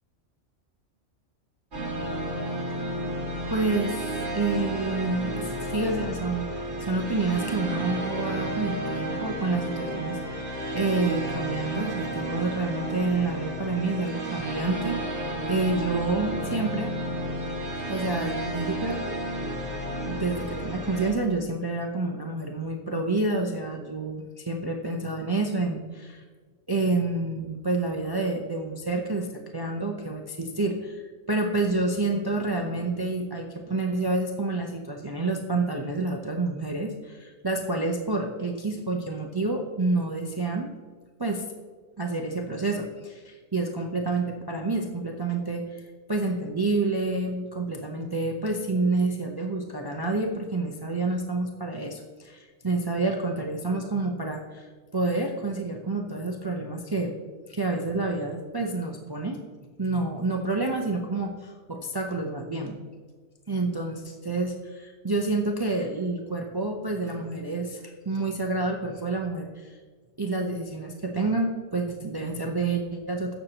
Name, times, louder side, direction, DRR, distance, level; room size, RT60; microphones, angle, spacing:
sound 1, 1.7-21.1, right 1 dB, 60° right, 2.4 m, -32 dB
voice 1, 3.5-4.1 4.3-10.4 10.7-15.0 15.5-16.9 17.9-19.0 20.1-26.2 26.7-29.3 29.5-31.0 31.3-40.7 41.2-41.4 42.0-57.1 57.5-59.4 59.8-62.8 63.5-69.8 70.2-73.3, right 3 dB, 25° right, 2 dB, 0.6 m, -28 dB
16.0 x 6.6 x 2.9 m, 1.5 s
omnidirectional pair, 1.3 m